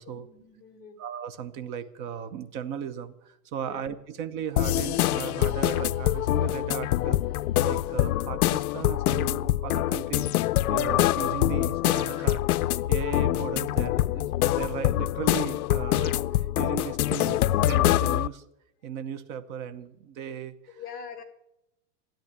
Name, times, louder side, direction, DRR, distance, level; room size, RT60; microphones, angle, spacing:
voice 1, 0.0-1.0 3.6-3.8 20.7-21.2, left 6 dB, 20° left, 3 dB, 2.1 m, -43 dB
voice 2, 1.0-7.2 7.6-18.5 18.8-20.8, right 8 dB, 30° right, 11 dB, 0.9 m, -36 dB
sound 1, 4.6-18.3, left 14 dB, 65° left, 0.6 m, -25 dB
13.5 x 10.5 x 8.0 m, 0.84 s
supercardioid pair, 165°, 48 cm